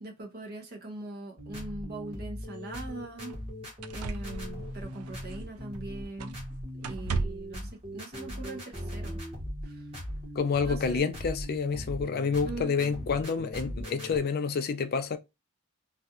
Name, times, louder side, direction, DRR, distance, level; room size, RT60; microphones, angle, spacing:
voice 1, 0.0-3.4 3.9-6.4 6.7-9.2 9.6-9.8 10.6-11.1 12.4-13.0, right 2 dB, 45° right, 0.7 m, -41 dB
sound 1, 1.4-14.2, equal, 30° right, 1.1 m, -39 dB
sound 2, 2.5-2.6 3.3-3.4 3.8-5.8 6.2-6.5 6.8-7.6 8.7-8.8, right 4 dB, 85° right, 0.3 m, -36 dB
voice 2, 10.4-15.2, left 5 dB, 45° left, 0.4 m, -29 dB
2.4 x 2.3 x 2.8 m
head